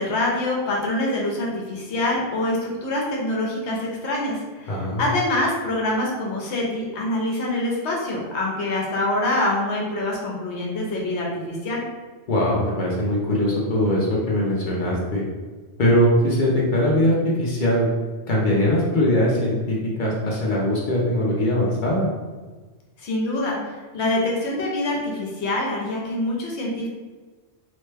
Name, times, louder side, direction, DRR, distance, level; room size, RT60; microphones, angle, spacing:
voice 1, 0.0-11.8 23.0-23.6 23.9-26.9, left 1 dB, 70° left, -2 dB, 1.0 m, -25 dB
voice 2, 4.7-5.0 12.3-15.2 15.8-17.9 18.3-22.1, left 1 dB, 50° left, -4 dB, 0.7 m, -21 dB
3.0 x 2.1 x 3.2 m, 1.4 s
omnidirectional pair, 1.2 m